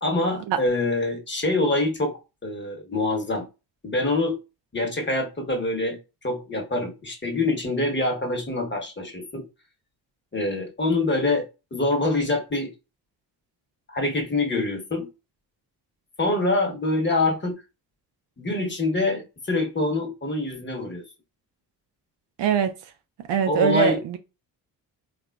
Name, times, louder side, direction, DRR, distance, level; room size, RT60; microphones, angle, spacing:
voice 1, 0.0-3.5 3.8-4.4 4.7-9.4 10.3-11.4 11.7-12.7 13.9-15.1 16.2-17.6 18.4-21.0 23.5-24.0, left 2 dB, 20° left, 1.1 m, -25 dB
voice 2, 22.4-22.7 23.3-24.2, right 7 dB, 60° right, 0.5 m, -22 dB
3.6 x 2.5 x 2.2 m
supercardioid pair, 45°, 49 cm